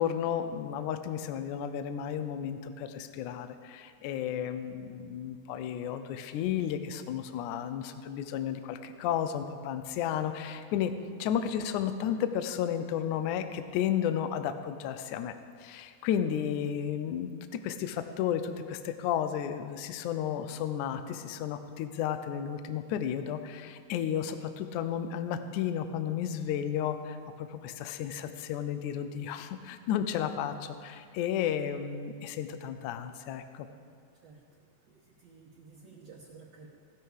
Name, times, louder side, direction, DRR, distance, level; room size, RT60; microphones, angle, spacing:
voice 1, 0.0-10.9 11.2-15.3 15.6-33.7, left 9 dB, 85° left, 9 dB, 1.7 m, -33 dB
voice 2, 34.1-36.7, right 4 dB, 65° right, -2 dB, 1.7 m, -54 dB
16.0 x 12.0 x 4.8 m, 2.2 s
omnidirectional pair, 4.4 m